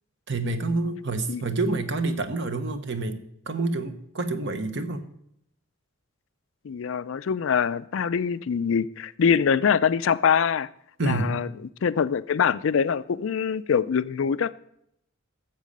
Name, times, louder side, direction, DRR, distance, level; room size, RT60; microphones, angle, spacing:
voice 1, 0.3-3.2 3.5-5.0 11.0-11.4, right 2 dB, 55° right, 8 dB, 1.0 m, -28 dB
voice 2, 6.6-10.7 11.0-11.5 11.8-14.5, left 7 dB, 65° left, 16 dB, 0.4 m, -24 dB
12.0 x 7.5 x 5.2 m, 0.73 s
head